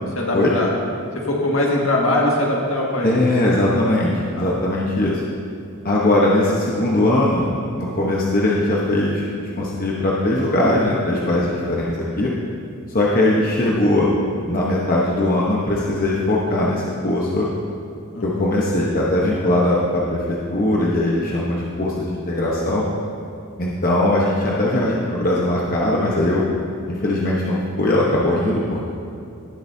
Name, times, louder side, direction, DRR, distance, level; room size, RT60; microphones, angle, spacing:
voice 1, 0.2-0.7 1.2-3.6 4.4-4.5 18.1-18.4, left 1 dB, 70° left, -2 dB, 1.9 m, -22 dB
voice 2, 3.0-5.2 5.8-7.5 7.7-9.2 9.6-12.3 12.9-14.1 14.5-17.5 18.2-22.9 23.6-26.5 26.9-28.9, left 1 dB, 40° left, -4 dB, 1.0 m, -20 dB
17.5 x 7.9 x 2.7 m, 2.6 s
head